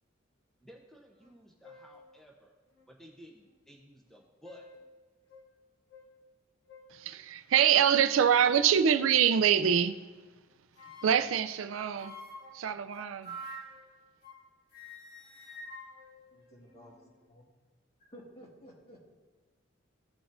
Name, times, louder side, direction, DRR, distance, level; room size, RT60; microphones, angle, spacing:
voice 1, 0.6-2.5 2.9-4.7, right 1 dB, ahead, 0.8 m, -55 dB
sound 1, 1.2-1.3 1.6-2.0 2.8-2.9 4.1-4.9 5.3-5.5 5.9-6.1 6.7-7.0 7.6-8.4 9.4-9.8 10.8-11.4 12.0-14.5 14.7-17.0, equal, 55° left, 1.5 m, -49 dB
voice 2, 6.9-10.0 11.0-12.2 12.5-13.4, right 8 dB, 85° right, 0.4 m, -25 dB
voice 3, 16.3-17.4 18.0-19.1, equal, 35° left, 1.9 m, -53 dB
15.5 x 6.0 x 2.6 m
head